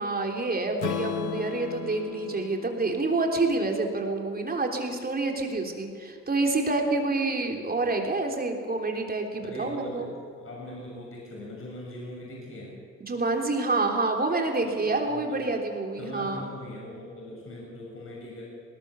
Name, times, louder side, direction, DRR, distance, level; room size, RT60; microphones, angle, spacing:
voice 1, 0.0-10.1 13.1-16.5, right 3 dB, 30° right, 2 dB, 3.6 m, -28 dB
Strum, 0.8-5.0, left 11 dB, 80° left, 1.1 m, -38 dB
voice 2, 9.4-12.8 14.6-15.5 16.0-18.4, left 1 dB, 45° left, -3 dB, 6.5 m, -41 dB
19.5 x 19.0 x 7.1 m, 2.3 s
cardioid pair, 90°, 30 cm